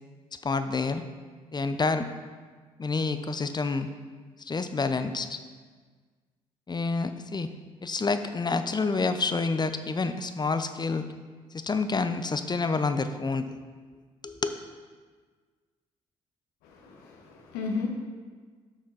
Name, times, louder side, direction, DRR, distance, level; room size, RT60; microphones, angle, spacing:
voice 1, 0.3-1.0 1.5-2.1 2.8-3.9 4.4-5.4 6.7-7.5 7.8-11.0 11.5-13.5 14.2-14.5, left 4 dB, 25° left, 10 dB, 0.7 m, -28 dB
voice 2, 16.6-17.9, left 4 dB, 80° left, 1 dB, 1.3 m, -34 dB
11.0 x 6.2 x 4.1 m, 1.5 s
hypercardioid pair, 50°, 16 cm